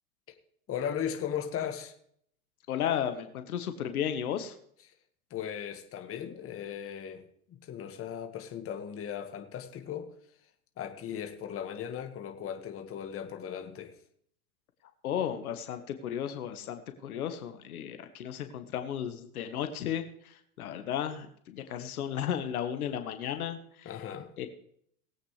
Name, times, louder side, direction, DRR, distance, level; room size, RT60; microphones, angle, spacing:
voice 1, 0.7-1.9 5.3-10.1 10.8-14.0 23.8-24.3, left 9 dB, 30° left, 1.7 m, -37 dB
voice 2, 2.7-4.5 15.0-23.9 24.4-24.5, left 9 dB, 80° left, 1.4 m, -34 dB
20.0 x 8.4 x 3.3 m
hypercardioid pair, 105°, 44 cm